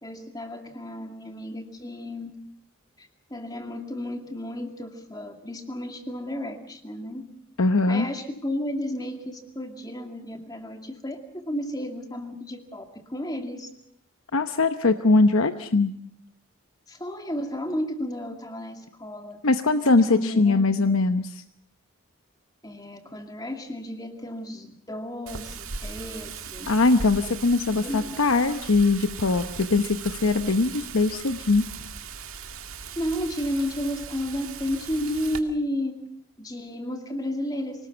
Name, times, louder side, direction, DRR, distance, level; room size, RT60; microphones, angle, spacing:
voice 1, 0.0-2.4 3.0-7.2 7.9-12.8 13.1-13.7 16.9-19.4 20.1-21.0 22.6-26.7 27.7-28.2 33.0-36.0 36.4-37.9, left 1 dB, 20° left, 5 dB, 2.3 m, -32 dB
voice 2, 7.6-8.1 14.3-15.9 19.4-21.4 26.7-31.6, left 3 dB, 80° left, 9 dB, 0.9 m, -21 dB
Wind, 25.3-35.4, right 6 dB, 80° right, 1.9 m, -38 dB
25.0 x 19.0 x 6.9 m, 0.64 s
head